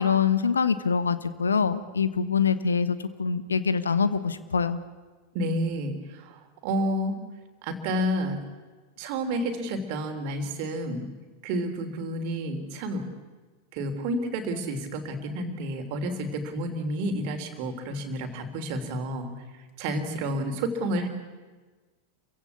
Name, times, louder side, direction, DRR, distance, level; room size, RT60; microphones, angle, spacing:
voice 1, 0.0-4.8, left 6 dB, 75° left, 14 dB, 1.2 m, -24 dB
voice 2, 5.3-7.2 7.6-8.4 9.0-11.0 11.4-13.0 13.7-19.3 19.8-21.1, right 1 dB, 45° right, 5 dB, 3.3 m, -30 dB
28.0 x 16.0 x 8.5 m, 1.3 s
figure-of-eight pair, 90°, 0 cm